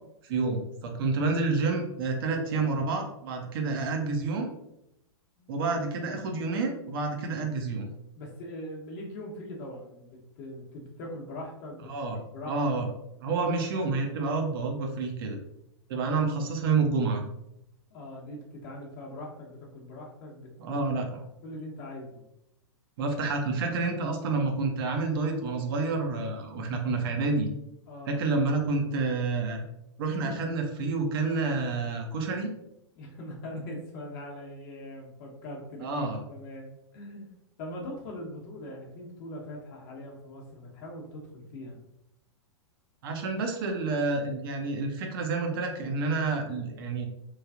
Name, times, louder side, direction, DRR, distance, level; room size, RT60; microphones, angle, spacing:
voice 1, 0.2-4.5 5.5-7.9 11.9-12.9 13.2-15.4 15.9-17.2 20.6-21.2 23.0-27.5 28.1-29.6 30.0-32.5 35.8-36.2 43.0-47.1, right 3 dB, 50° right, 2 dB, 0.6 m, -29 dB
voice 2, 2.1-2.7 5.4-5.6 8.1-12.8 17.9-20.8 21.4-22.3 27.9-28.2 30.0-30.4 33.0-37.3 37.6-41.8, left 1 dB, 45° left, -1 dB, 0.9 m, -42 dB
3.1 x 2.3 x 2.4 m, 0.83 s
figure-of-eight pair, 105°, 16 cm